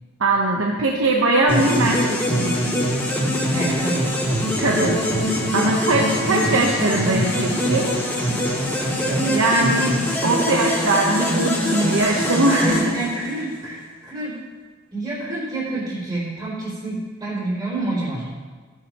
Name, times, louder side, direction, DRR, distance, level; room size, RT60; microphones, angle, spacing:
voice 1, 0.2-2.6 4.6-7.9 9.2-12.9, right 2 dB, 75° right, -1 dB, 1.0 m, -21 dB
sound 1, 1.5-13.6, equal, 10° left, 2.5 m, -23 dB
voice 2, 3.5-4.1 5.6-5.8 9.0-9.5 10.2-11.1 11.6-12.2 12.6-14.3 14.9-18.3, right 2 dB, 25° right, -11 dB, 3.2 m, -28 dB
15.5 x 9.9 x 3.0 m, 1.4 s
head